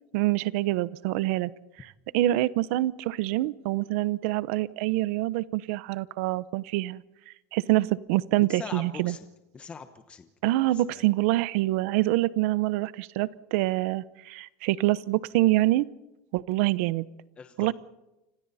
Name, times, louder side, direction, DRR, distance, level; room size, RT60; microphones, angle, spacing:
voice 1, 0.1-1.5 1.8-7.0 7.3-9.1 10.4-15.9 16.3-17.1 17.6-17.7, right 17 dB, 60° right, 18 dB, 0.9 m, -26 dB
voice 2, 8.5-9.3 9.5-10.3 10.7-11.0 17.4-17.7, left 5 dB, 15° left, 8 dB, 1.0 m, -42 dB
29.5 x 26.0 x 4.2 m, 0.96 s
cardioid pair, 175°, 8 cm